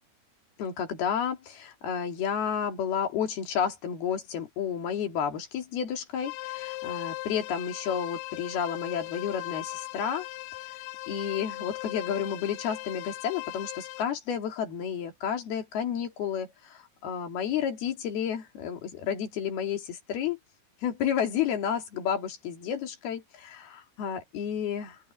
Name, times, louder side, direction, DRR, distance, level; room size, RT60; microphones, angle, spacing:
voice 1, 0.6-10.3 11.1-20.4 20.8-25.0, left 8 dB, 70° left, 4.7 m, -31 dB
sound 1, 6.2-14.0, left 19 dB, 85° left, 2.7 m, -38 dB
open air
omnidirectional pair, 4.8 m